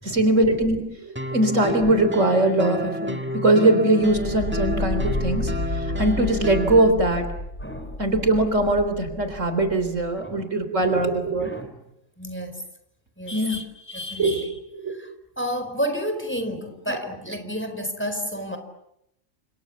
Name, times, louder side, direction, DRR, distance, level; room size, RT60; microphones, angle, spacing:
voice 1, 0.0-0.8 1.3-5.5 6.0-7.3 8.0-11.5 13.3-13.6 14.2-14.3 14.8-14.9 16.9-17.0, right 2 dB, 75° right, 9 dB, 4.1 m, -21 dB
sound 1, 1.2-6.9, equal, 10° right, 1.5 m, -30 dB
sound 2, 4.0-10.1, left 2 dB, 65° left, 4.9 m, -31 dB
voice 2, 7.6-8.0 10.2-10.4 10.8-11.0 11.4-11.7 12.2-12.6 13.2-14.6 14.9-15.1 15.4-18.6, equal, 10° left, 7 dB, 4.4 m, -31 dB
29.5 x 27.5 x 7.2 m, 0.82 s
omnidirectional pair, 1.3 m